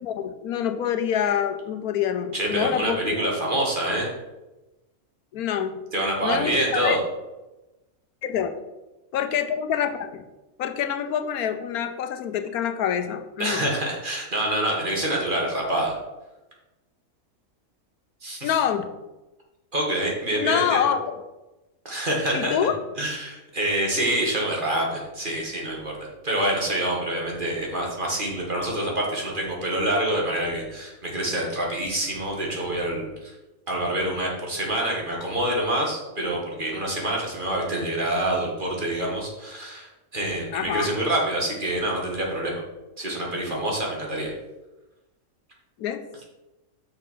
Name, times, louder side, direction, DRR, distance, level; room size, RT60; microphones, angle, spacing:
voice 1, 0.0-3.0 5.3-5.8 6.2-7.0 8.2-8.5 9.1-10.2 10.6-13.6 18.4-18.9 20.3-21.1 22.3-22.8 40.5-41.0 45.8-46.0, left 9 dB, 80° left, 8 dB, 1.2 m, -26 dB
voice 2, 2.3-4.1 5.9-7.0 13.4-16.0 18.2-18.6 19.7-20.8 21.8-22.5 23.0-33.3 33.7-42.6 43.0-44.3, right 1 dB, 35° right, -1 dB, 2.1 m, -26 dB
6.5 x 6.2 x 5.7 m, 1.0 s
omnidirectional pair, 1.5 m